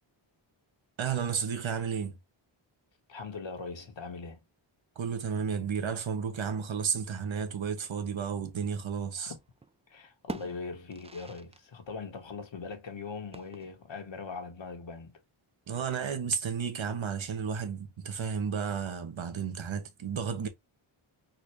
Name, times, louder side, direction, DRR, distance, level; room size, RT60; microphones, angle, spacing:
voice 1, 1.0-2.1 5.0-9.3 15.7-20.5, right 6 dB, 70° right, 1.1 m, -32 dB
voice 2, 3.1-4.4 9.2-9.4 9.9-15.2, left 4 dB, 65° left, 1.3 m, -41 dB
sound 1, 9.0-9.7 10.0-11.7 11.9-12.0 13.3-14.0, right 3 dB, 15° right, 0.3 m, -45 dB
4.1 x 2.6 x 3.0 m
wide cardioid pair, 75°, 49 cm